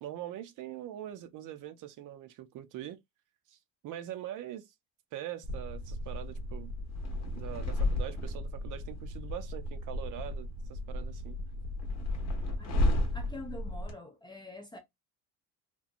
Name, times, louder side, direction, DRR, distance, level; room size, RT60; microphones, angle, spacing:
voice 1, 0.0-3.0 3.5-3.6 3.8-4.7 5.1-6.7 7.3-11.4, right 12 dB, 50° right, 0.5 m, -43 dB
sound 1, 5.4-13.9, left 1 dB, 40° left, 0.8 m, -33 dB
voice 2, 13.1-14.8, left 2 dB, 10° left, 0.4 m, -45 dB
2.8 x 2.2 x 2.4 m
cardioid pair, 140°, 40 cm